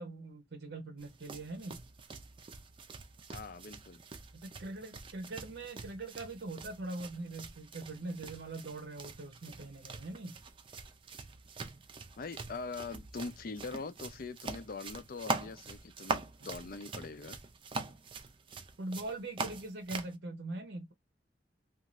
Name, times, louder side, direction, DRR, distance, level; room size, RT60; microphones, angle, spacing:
voice 1, 0.0-1.9 4.3-10.4 16.4-16.5 18.8-20.9, right 2 dB, 70° right, 0.6 m, -42 dB
sound 1, 1.0-20.1, right 3 dB, 30° right, 0.4 m, -43 dB
voice 2, 3.3-4.0 12.2-17.4, left 4 dB, 55° left, 0.5 m, -43 dB
2.6 x 2.3 x 3.0 m
head